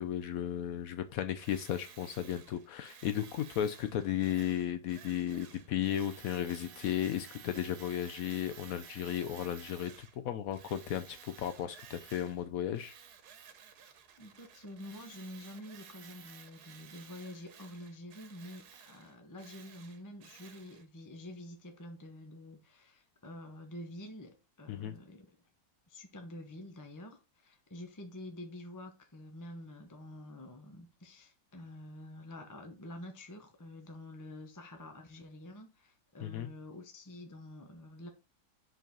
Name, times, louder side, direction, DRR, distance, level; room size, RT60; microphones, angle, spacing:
voice 1, 0.0-12.9 24.7-24.9 36.2-36.5, left 10 dB, 70° left, 1.0 m, -35 dB
Tools, 1.4-10.2 10.5-12.5 12.7-20.8, right 7 dB, 85° right, 1.4 m, -54 dB
voice 2, 14.2-25.3 25.9-38.1, left 1 dB, 15° left, 0.6 m, -48 dB
5.1 x 3.9 x 5.1 m
omnidirectional pair, 1.6 m